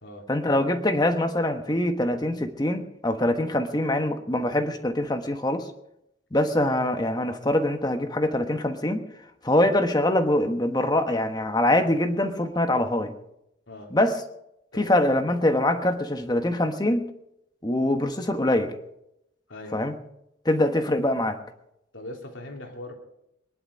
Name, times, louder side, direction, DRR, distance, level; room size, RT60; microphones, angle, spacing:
voice 1, 0.3-5.7 6.3-9.0 9.4-13.1 13.9-14.2 14.8-17.1 17.6-18.7 19.7-19.9 20.4-21.4, left 1 dB, 20° left, 7 dB, 1.2 m, -24 dB
voice 2, 21.9-22.9, left 1 dB, 70° left, 2 dB, 3.1 m, -40 dB
22.0 x 11.0 x 5.3 m, 0.81 s
head